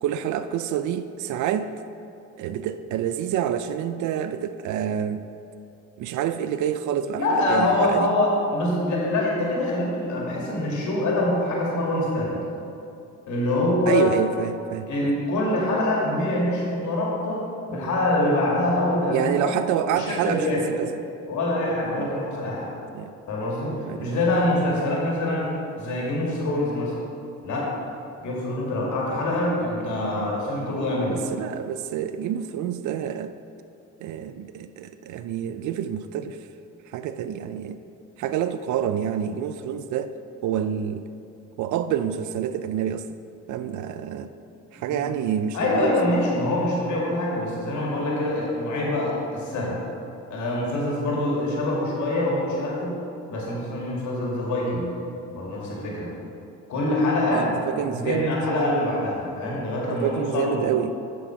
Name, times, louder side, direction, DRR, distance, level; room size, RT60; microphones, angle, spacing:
voice 1, 0.0-1.7 2.4-5.3 6.0-8.1 13.9-15.1 19.1-20.9 22.0-22.1 22.9-23.1 23.8-24.2 29.9-30.3 31.1-33.3 34.0-36.4 36.9-37.8 38.2-40.1 40.4-41.0 41.6-43.1 43.5-44.3 44.7-46.5 57.3-58.3 59.9-61.0, right 9 dB, 75° right, 11 dB, 0.5 m, -28 dB
voice 2, 7.1-12.4 13.3-14.1 14.9-19.5 19.9-20.6 21.3-22.7 23.3-25.5 25.8-26.9 27.4-27.7 28.2-31.2 44.9-45.0 45.5-49.8 50.3-53.0 53.3-54.9 55.3-56.1 56.7-57.5 57.8-60.8, left 1 dB, 75° left, -3 dB, 2.3 m, -25 dB
7.9 x 6.4 x 5.8 m, 2.7 s
cardioid pair, 90°, 30 cm